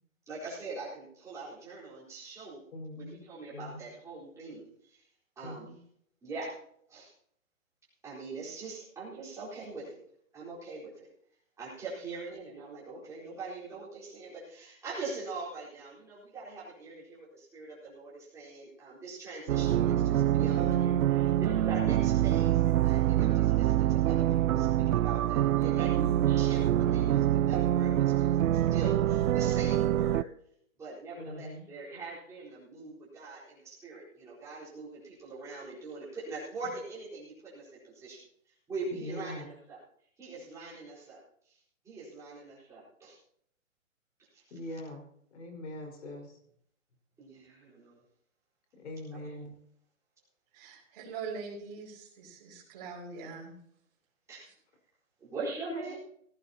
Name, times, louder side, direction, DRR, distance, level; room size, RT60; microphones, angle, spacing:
voice 1, 0.3-2.6 3.0-5.0 5.4-5.7 6.2-6.5 6.9-7.1 8.0-10.0 10.3-11.1 11.6-30.2 30.8-38.2 38.7-39.8 40.2-41.2 41.5-41.6 41.8-43.2 44.3-44.4 47.2-48.0 49.1-49.2 54.3-54.5 55.3-56.0, right 3 dB, 5° right, -9 dB, 4.4 m, -42 dB
voice 2, 2.7-3.2 3.5-3.8 5.4-5.8 20.5-21.1 31.2-31.7 38.9-39.5 44.5-45.0 45.3-46.4 48.8-49.6 55.7-56.0, left 1 dB, 55° left, 2 dB, 5.1 m, -42 dB
sound 1, 19.5-30.2, right 12 dB, 85° right, 0.5 m, -25 dB
voice 3, 50.5-53.6 54.4-54.5, right 5 dB, 30° right, -4 dB, 5.2 m, -42 dB
17.5 x 16.5 x 2.9 m, 0.68 s
hypercardioid pair, 165°, 41 cm